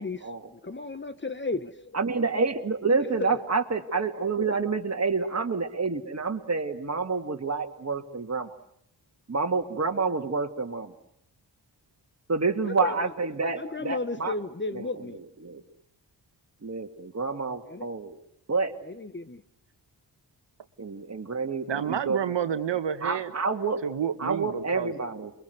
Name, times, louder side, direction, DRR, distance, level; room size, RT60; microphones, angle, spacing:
voice 1, 0.0-2.0 3.0-3.4 12.6-13.1 13.5-15.2 17.7-18.0 18.8-19.4, left 3 dB, 25° left, 1.2 m, -34 dB
voice 2, 1.9-8.6 9.3-10.9 12.3-14.3 15.4-15.6 16.6-18.2 18.5-18.7 20.8-22.2 23.0-23.8 24.2-25.3, right 4 dB, 35° right, 2.5 m, -28 dB
voice 3, 21.7-23.3 23.8-24.9, right 9 dB, 80° right, 1.4 m, -29 dB
28.5 x 23.0 x 8.0 m
wide cardioid pair, 100°, 43 cm